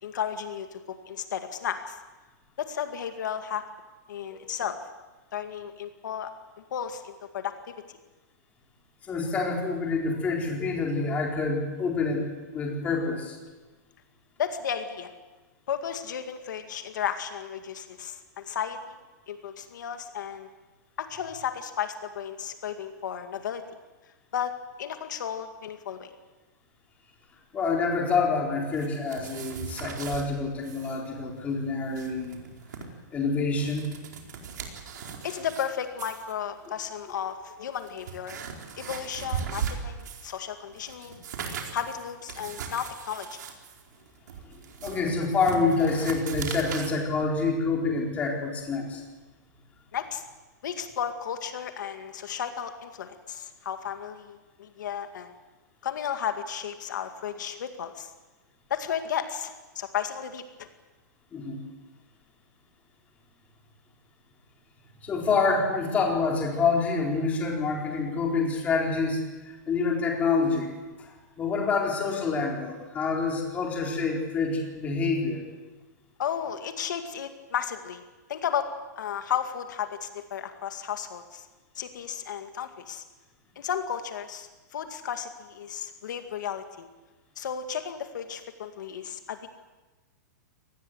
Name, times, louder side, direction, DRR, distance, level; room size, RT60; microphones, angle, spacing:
voice 1, 0.0-2.0 2.6-3.6 4.1-4.8 5.3-6.3 6.7-7.5 14.4-15.1 15.7-19.0 19.3-20.5 21.0-23.6 24.3-24.5 24.8-26.1 31.2-31.3 35.0-38.4 38.8-41.2 41.7-43.4 49.9-50.2 50.6-55.3 55.8-58.1 58.7-60.7 76.2-78.0 78.3-78.7 79.0-81.5 81.8-83.0 83.6-86.9 87.4-89.5, left 8 dB, 75° left, 7 dB, 2.1 m, -34 dB
voice 2, 9.0-12.3 12.5-13.4 27.5-32.4 33.1-33.8 44.5-49.0 61.3-61.6 65.0-75.4, left 4 dB, 15° left, 0 dB, 4.1 m, -27 dB
sound 1, 28.7-30.3 30.6-31.0 31.2-31.3 31.8-32.8 33.4-35.7 36.0-36.3 37.1-37.2 37.7-40.4 40.7-46.9, right 7 dB, 70° right, 4.5 m, -38 dB
25.5 x 19.5 x 8.0 m, 1.2 s
supercardioid pair, 170°, 10 cm